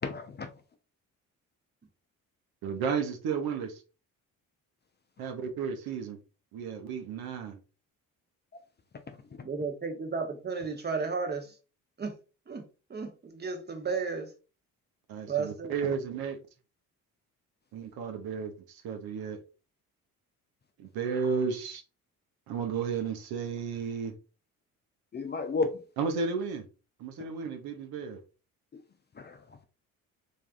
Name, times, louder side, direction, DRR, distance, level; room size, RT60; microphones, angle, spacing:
voice 1, 0.0-0.5 25.1-25.8 29.1-29.6, left 3 dB, 25° left, 0.5 m, -32 dB
voice 2, 2.6-3.8 5.2-6.2 6.5-7.6 15.1-16.4 17.7-19.4 20.8-21.8 22.5-24.2 26.0-26.7 27.0-28.2, right 6 dB, 60° right, 0.8 m, -33 dB
voice 3, 9.4-11.5 12.0-12.2 12.5-12.6 12.9-14.3 15.3-15.7, right 5 dB, 25° right, 0.9 m, -33 dB
3.3 x 2.6 x 2.4 m
hypercardioid pair, 50°, 41 cm